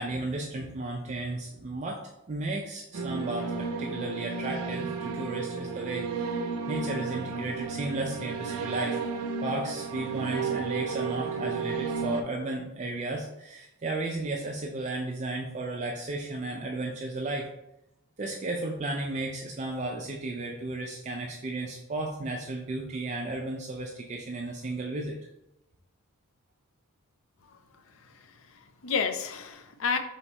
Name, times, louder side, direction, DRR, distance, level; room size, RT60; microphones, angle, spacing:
voice 1, 0.0-2.0 2.3-9.0 9.4-17.5 18.2-25.2, right 2 dB, 30° right, 0 dB, 0.4 m, -34 dB
sound 1, 2.9-12.2, right 4 dB, 85° right, 0.5 m, -33 dB
voice 2, 28.0-30.0, left 5 dB, 60° left, 7 dB, 0.4 m, -32 dB
3.5 x 3.0 x 4.2 m, 0.89 s
head